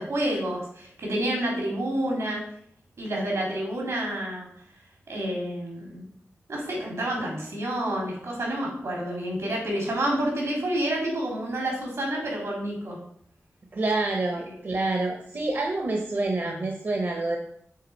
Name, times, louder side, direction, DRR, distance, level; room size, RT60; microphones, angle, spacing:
voice 1, 0.0-2.4 3.0-4.5 5.1-6.1 6.5-13.0 14.4-14.6 16.4-16.6, right 1 dB, 85° right, -1 dB, 2.5 m, -29 dB
voice 2, 13.7-17.4, right 2 dB, 45° right, 2 dB, 0.8 m, -27 dB
6.6 x 3.8 x 4.4 m, 0.66 s
wide cardioid pair, 125°, 5 cm